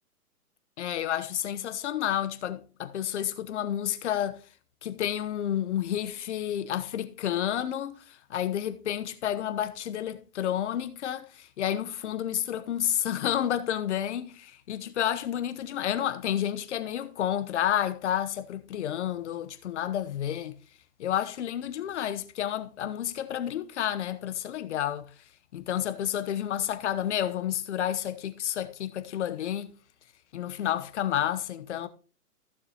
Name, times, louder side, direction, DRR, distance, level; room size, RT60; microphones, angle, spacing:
voice 1, 0.8-4.4 4.8-20.6 21.0-25.1 25.5-29.7 30.3-31.9, left 10 dB, 50° left, 1.1 m, -30 dB
15.0 x 6.6 x 2.9 m
figure-of-eight pair, 130°, 45 cm